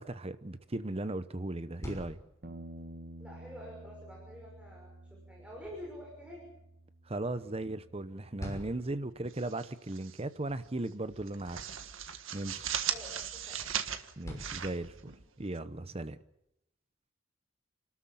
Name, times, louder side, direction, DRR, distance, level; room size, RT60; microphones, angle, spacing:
voice 1, 0.0-2.2 7.1-11.6 12.3-12.7 14.2-15.1 15.4-16.2, right 2 dB, 30° right, 0.9 m, -37 dB
sound 1, 1.5-15.5, equal, 15° left, 6.1 m, -51 dB
Bass guitar, 2.4-8.7, right 1 dB, 50° right, 1.6 m, -51 dB
voice 2, 3.2-6.5 12.9-13.6, equal, 5° right, 5.9 m, -48 dB
sound 2, 9.3-10.2 10.5-10.7 11.1-15.6, right 9 dB, 80° right, 1.6 m, -38 dB
28.5 x 13.5 x 8.7 m
head